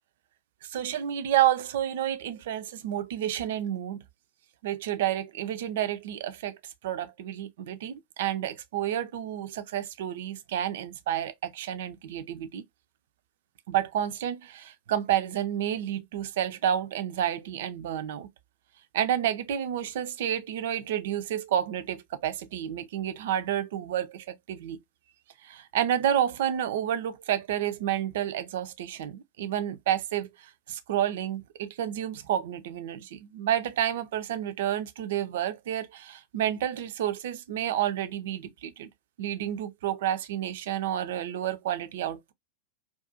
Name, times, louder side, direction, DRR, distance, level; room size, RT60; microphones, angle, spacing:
voice 1, 0.6-4.0 4.6-6.6 6.8-12.6 13.7-18.3 18.9-24.8 25.4-38.9 39.2-42.3, right 11 dB, 55° right, 0.4 m, -30 dB
2.4 x 2.2 x 2.6 m
figure-of-eight pair, 90°, 0 cm